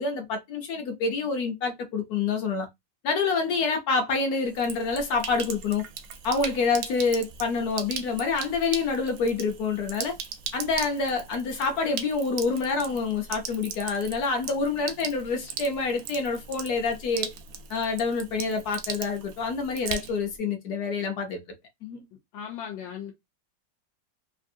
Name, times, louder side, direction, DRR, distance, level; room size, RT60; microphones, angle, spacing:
voice 1, 0.0-2.7 3.0-5.8 6.2-10.1 10.5-17.3 17.7-21.4 21.8-22.1, left 4 dB, 65° left, 1.1 m, -27 dB
Sink (filling or washing), 4.4-20.4, right 7 dB, 75° right, 0.8 m, -39 dB
voice 2, 22.3-23.1, left 8 dB, 90° left, 1.4 m, -37 dB
3.3 x 2.5 x 2.6 m
omnidirectional pair, 2.0 m